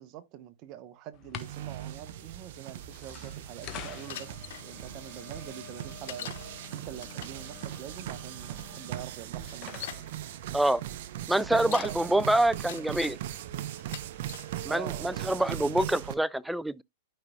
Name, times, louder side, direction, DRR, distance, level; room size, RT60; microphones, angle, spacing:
voice 1, 0.0-6.4 6.7-9.8 11.3-13.2 14.7-15.2, right 12 dB, 45° right, 1.1 m, -44 dB
sound 1, 1.1-11.4, left 9 dB, 40° left, 1.4 m, -48 dB
sound 2, 1.4-16.2, right 12 dB, 60° right, 0.7 m, -39 dB
Bicycle, 4.1-4.6 6.1-6.5 7.0-7.4 8.5-8.6 9.4-10.1 11.4-12.0 12.5-13.2 13.8-14.5 15.1-15.5, left 13 dB, 65° left, 0.4 m, -42 dB
voice 2, 11.3-13.2 14.6-16.8, right 1 dB, 5° right, 0.4 m, -26 dB
12.0 x 5.5 x 2.3 m
hypercardioid pair, 110°, 0 cm